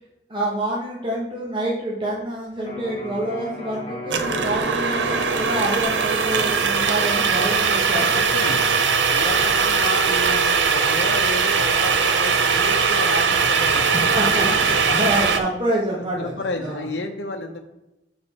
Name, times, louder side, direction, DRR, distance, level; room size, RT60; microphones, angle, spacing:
voice 1, 0.3-8.1 13.9-16.9, right 1 dB, 30° right, -4 dB, 1.2 m, -27 dB
Electric guitar, 2.6-10.4, left 2 dB, 30° left, 1.7 m, -37 dB
sound 1, 4.1-15.4, right 5 dB, 85° right, 0.7 m, -20 dB
voice 2, 8.1-8.7 9.1-14.0 14.5-15.0 15.9-17.6, left 2 dB, 80° left, 3 dB, 0.8 m, -31 dB
6.9 x 5.3 x 4.2 m, 0.95 s
head